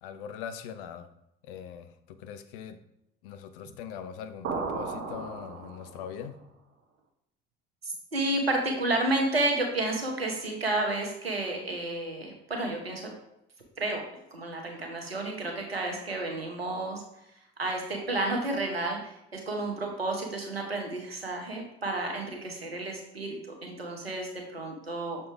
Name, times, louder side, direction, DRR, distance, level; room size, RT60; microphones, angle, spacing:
voice 1, 0.0-1.1 1.4-2.8 3.2-6.4, left 8 dB, 65° left, 10 dB, 0.7 m, -41 dB
sound 1, 4.4-6.2, right 4 dB, 50° right, 1.1 m, -35 dB
voice 2, 7.8-13.1 13.8-14.0 14.3-17.0 17.6-25.2, right 2 dB, 90° right, 2 dB, 1.1 m, -31 dB
6.6 x 4.2 x 3.5 m, 0.84 s
figure-of-eight pair, 60°, 29 cm